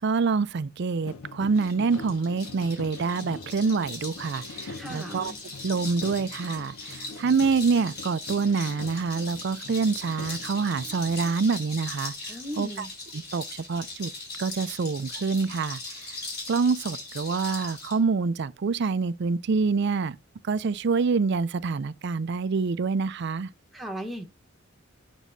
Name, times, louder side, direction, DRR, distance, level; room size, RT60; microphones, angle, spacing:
voice 1, 0.0-5.3 5.6-12.1 12.6-12.9 13.3-14.1 14.4-15.8 16.5-20.2 20.4-23.5, right 4 dB, 55° right, 0.4 m, -26 dB
sound 1, 1.0-11.4, left 4 dB, 85° left, 0.6 m, -44 dB
sound 2, 1.5-18.0, left 2 dB, 55° left, 4.2 m, -40 dB
voice 2, 4.8-5.3 12.3-12.9 23.7-24.2, equal, ahead, 1.1 m, -36 dB
9.1 x 6.1 x 2.7 m
head